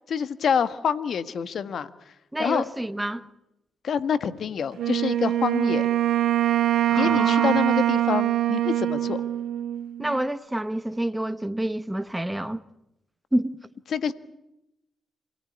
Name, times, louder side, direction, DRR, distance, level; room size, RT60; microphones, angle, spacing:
voice 1, 0.1-1.9 2.4-2.7 3.8-5.9 6.9-9.2 13.9-14.1, left 7 dB, 65° left, 1.5 m, -26 dB
voice 2, 2.3-3.3 6.9-7.5 10.0-12.6 13.3-13.5, right 1 dB, 10° right, 1.0 m, -28 dB
Wind instrument woodwind instrument, 4.8-10.2, right 12 dB, 80° right, 2.1 m, -23 dB
27.5 x 17.5 x 9.8 m
cardioid pair, 90°, 0 cm